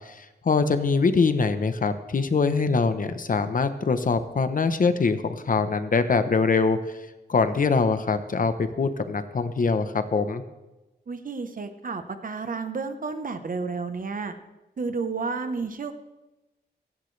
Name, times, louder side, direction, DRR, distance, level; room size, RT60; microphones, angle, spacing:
voice 1, 0.1-6.8 7.3-10.4, left 4 dB, 50° left, 10 dB, 0.9 m, -23 dB
voice 2, 11.1-14.3 14.8-15.9, right 4 dB, 50° right, 9 dB, 1.0 m, -31 dB
16.5 x 16.0 x 3.3 m, 1.0 s
wide cardioid pair, 165°, 18 cm